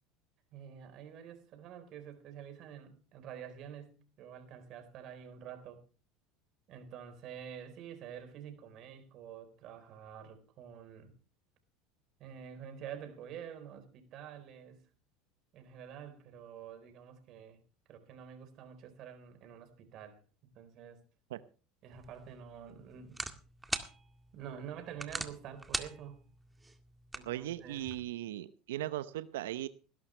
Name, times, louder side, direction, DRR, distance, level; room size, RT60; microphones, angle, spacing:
voice 1, 0.5-5.8 6.7-11.1 12.2-14.8 15.5-17.6 17.9-21.0 21.8-23.2 24.3-26.2 27.1-27.9, right 8 dB, 55° right, 8 dB, 4.2 m, -48 dB
sound 1, 21.9-28.0, right 2 dB, 10° right, 1.9 m, -43 dB
voice 2, 27.3-29.7, right 14 dB, 80° right, 15 dB, 0.8 m, -38 dB
20.0 x 12.0 x 3.3 m, 0.36 s
hypercardioid pair, 85°, 0 cm